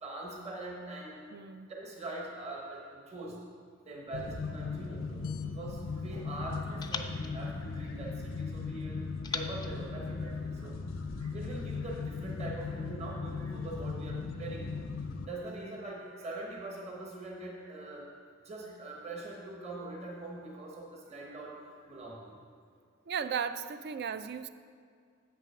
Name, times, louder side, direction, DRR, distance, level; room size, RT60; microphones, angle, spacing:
voice 1, 0.0-1.2 1.7-3.4 3.8-10.8 11.1-14.8 15.2-18.1 18.4-22.4, right 2 dB, 35° right, -2 dB, 1.2 m, -43 dB
voice 2, 1.3-1.7 23.1-24.5, right 7 dB, 55° right, 13 dB, 0.3 m, -35 dB
sound 1, 4.1-15.3, left 4 dB, 70° left, 0.5 m, -38 dB
sound 2, 5.0-6.2 6.8-8.4 9.2-10.8, left 5 dB, 20° left, 0.3 m, -44 dB
7.6 x 6.1 x 5.7 m, 2.2 s
head